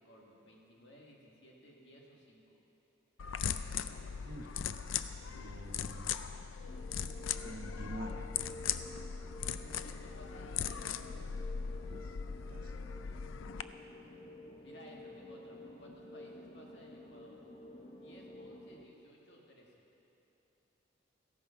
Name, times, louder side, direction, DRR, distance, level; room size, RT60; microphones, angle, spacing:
voice 1, 0.0-2.6 9.8-11.0 14.6-17.4 17.9-19.7, equal, 60° left, -2 dB, 2.0 m, -58 dB
sound 1, 3.2-13.6, left 7 dB, 75° left, 0.4 m, -39 dB
voice 2, 5.3-6.1 7.4-8.3 11.9-12.0 12.5-12.6, right 1 dB, 45° right, 4 dB, 0.8 m, -46 dB
sound 2, 6.7-18.8, left 1 dB, 30° left, 0.9 m, -51 dB
15.5 x 8.8 x 5.8 m, 3.0 s
head